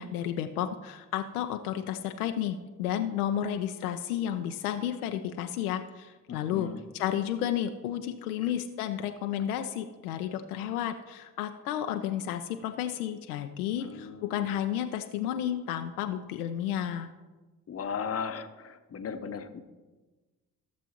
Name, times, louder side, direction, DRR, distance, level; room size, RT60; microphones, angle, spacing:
voice 1, 0.0-17.1, left 10 dB, 80° left, 7 dB, 0.5 m, -32 dB
voice 2, 6.3-6.8 8.4-8.5 13.8-14.4 17.7-19.6, left 6 dB, 35° left, 9 dB, 0.8 m, -37 dB
15.5 x 6.9 x 2.9 m, 1.2 s
figure-of-eight pair, 40°, 44 cm